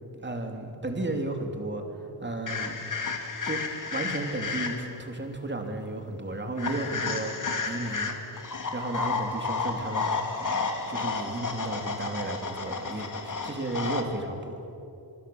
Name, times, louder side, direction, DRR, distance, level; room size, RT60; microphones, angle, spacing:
voice 1, 0.2-1.8 2.2-2.8 3.4-3.6 3.9-7.4 7.6-8.2 8.7-10.1 10.4-14.5, right 2 dB, 25° right, 4 dB, 2.9 m, -33 dB
sound 1, 2.5-5.0 6.6-14.0, left 4 dB, 50° left, 2.4 m, -32 dB
25.0 x 25.0 x 7.1 m, 2.9 s
wide cardioid pair, 140°, 41 cm